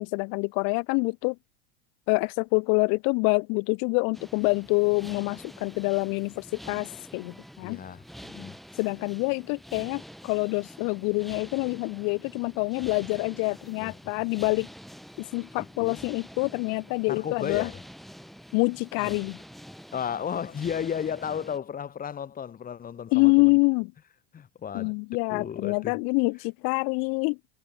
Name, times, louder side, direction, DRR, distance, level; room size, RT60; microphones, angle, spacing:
voice 1, 0.0-1.4 2.1-7.8 8.8-14.7 15.2-17.7 18.5-19.4 23.1-23.9 24.7-27.4, left 36 dB, 55° left, 0.9 m, -26 dB
sound 1, 4.1-21.6, equal, ahead, 1.2 m, -47 dB
voice 2, 7.6-8.6 13.8-14.1 15.6-16.0 17.1-17.8 19.0-19.2 19.9-23.6 24.3-24.9 25.3-26.0, left 8 dB, 25° left, 1.5 m, -34 dB
hypercardioid pair, 90°, 34 cm